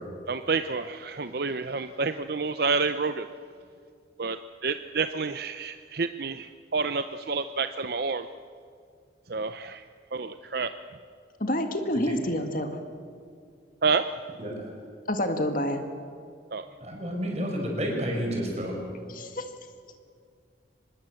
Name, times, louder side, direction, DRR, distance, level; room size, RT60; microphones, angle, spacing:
voice 1, 0.3-3.3 4.2-8.3 9.3-9.8 10.1-10.7 13.8-14.1 16.5-16.7, right 4 dB, 50° right, 10 dB, 0.6 m, -29 dB
voice 2, 11.4-12.7 15.1-15.8 19.1-19.5, left 1 dB, 45° left, 6 dB, 1.8 m, -28 dB
voice 3, 16.8-18.7, equal, 35° right, 0 dB, 6.1 m, -30 dB
25.0 x 20.5 x 7.8 m, 2.3 s
head